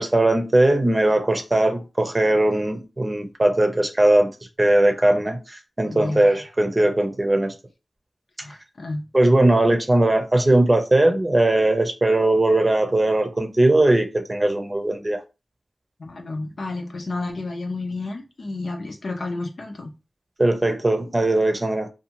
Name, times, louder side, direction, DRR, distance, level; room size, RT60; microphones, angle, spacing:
voice 1, 0.0-4.3 4.6-7.5 9.1-15.2 20.4-21.9, right 1 dB, 35° right, 0.6 m, -19 dB
voice 2, 5.8-6.3 8.4-9.1 16.0-19.9, left 2 dB, 80° left, 0.6 m, -31 dB
2.7 x 2.3 x 2.9 m
wide cardioid pair, 55°, 0 cm